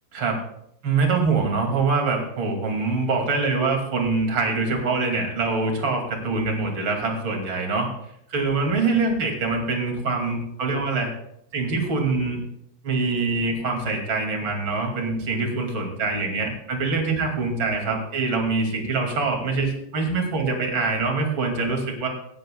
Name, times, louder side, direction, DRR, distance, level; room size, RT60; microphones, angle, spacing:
voice 1, 0.8-7.9 8.3-11.1 11.5-12.4 12.8-22.1, right 3 dB, 35° right, 2 dB, 2.4 m, -24 dB
17.5 x 14.0 x 2.3 m, 0.73 s
omnidirectional pair, 5.0 m